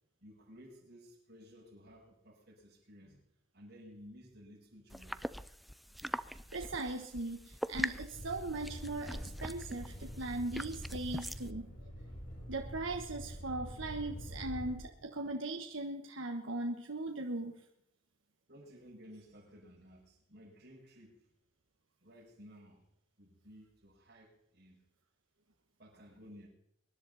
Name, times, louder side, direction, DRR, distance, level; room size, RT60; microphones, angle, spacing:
voice 1, 0.2-3.2 3.5-5.2 15.0-15.1 18.5-21.1 22.0-22.8 23.2-24.8 25.8-26.5, equal, 55° right, -9 dB, 6.8 m, -56 dB
sound 1, 4.9-11.5, equal, ahead, 0.4 m, -43 dB
voice 2, 6.5-11.7 12.5-17.5, right 2 dB, 80° right, 4 dB, 1.3 m, -39 dB
sound 2, 8.1-14.8, equal, 80° left, 7.4 m, -46 dB
24.5 x 11.0 x 4.2 m, 0.75 s
head